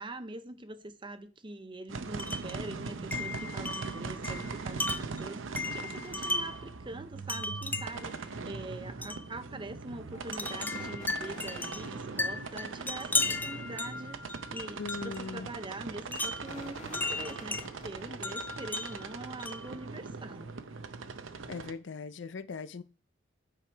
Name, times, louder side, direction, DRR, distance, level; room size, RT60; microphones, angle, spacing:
voice 1, 0.0-20.5, right 2 dB, 25° right, 0.7 m, -44 dB
sound 1, 1.9-21.7, right 4 dB, 85° right, 0.7 m, -41 dB
Wind chime, 2.2-2.6 3.1-6.7 7.3-8.1 9.0-9.3 10.3-15.3 16.1-17.7 18.2-19.8, left 3 dB, 10° left, 0.4 m, -36 dB
sound 2, 10.1-13.2 16.0-18.2, left 2 dB, 40° left, 1.9 m, -50 dB
voice 2, 14.8-15.5 21.5-22.8, left 4 dB, 65° left, 0.5 m, -39 dB
8.9 x 4.9 x 4.5 m
head